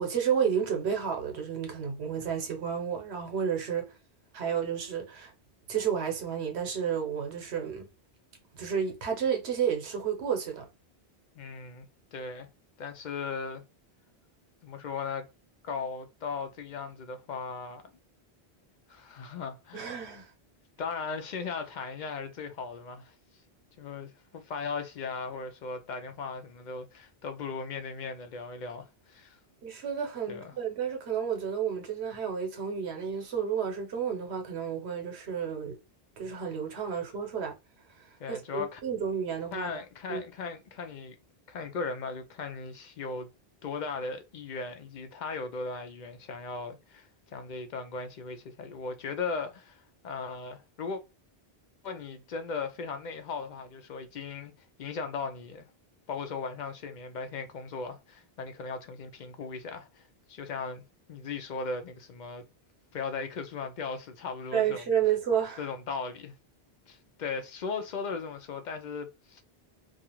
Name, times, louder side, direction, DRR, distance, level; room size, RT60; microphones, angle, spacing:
voice 1, 0.0-3.9 4.3-5.3 5.7-7.8 8.5-10.7 19.7-20.3 29.6-35.8 36.2-37.5 38.3-39.7 40.1-40.2 64.5-65.6, right 8 dB, 90° right, 1.0 m, -31 dB
voice 2, 11.4-11.9 12.1-12.5 12.8-13.6 14.6-15.3 15.6-17.8 18.9-20.0 20.8-23.1 23.8-29.4 30.3-30.5 38.2-38.8 39.5-41.2 41.5-43.3 43.6-51.0 51.8-54.5 54.8-55.6 56.1-60.8 61.1-62.4 62.9-64.8 65.6-66.3 66.9-69.4, left 4 dB, 55° left, 0.6 m, -37 dB
2.4 x 2.4 x 2.9 m
omnidirectional pair, 1.1 m